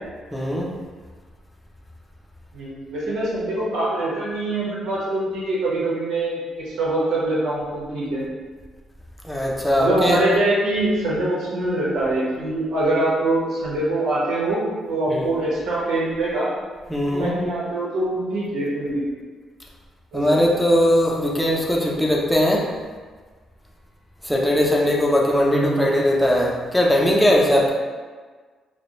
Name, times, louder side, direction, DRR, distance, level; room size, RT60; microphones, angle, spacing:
voice 1, 0.3-0.7 9.2-10.2 15.1-15.3 16.9-17.4 20.1-22.7 24.2-27.7, left 1 dB, 5° left, -2 dB, 0.7 m, -19 dB
voice 2, 2.5-8.2 9.8-14.6 14.9-16.5 17.1-19.0 20.1-20.4 25.5-25.9, right 2 dB, 80° right, -6 dB, 1.4 m, -24 dB
4.9 x 2.3 x 3.1 m, 1.5 s
cardioid pair, 90°, 0 cm